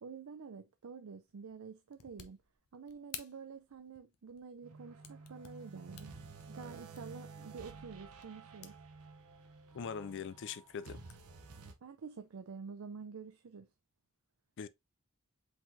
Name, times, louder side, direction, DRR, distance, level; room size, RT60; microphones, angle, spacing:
voice 1, 0.0-2.4 2.7-6.1 6.5-8.8 11.8-13.7, right 5 dB, 70° right, 0.5 m, -48 dB
sound 1, 1.2-8.9 9.3-9.8 10.1-12.5, left 9 dB, 90° left, 0.8 m, -55 dB
sound 2, 4.6-11.7, right 4 dB, 85° right, 0.9 m, -52 dB
voice 2, 9.7-11.0 14.6-14.7, left 6 dB, 55° left, 0.4 m, -41 dB
5.0 x 3.8 x 2.6 m
head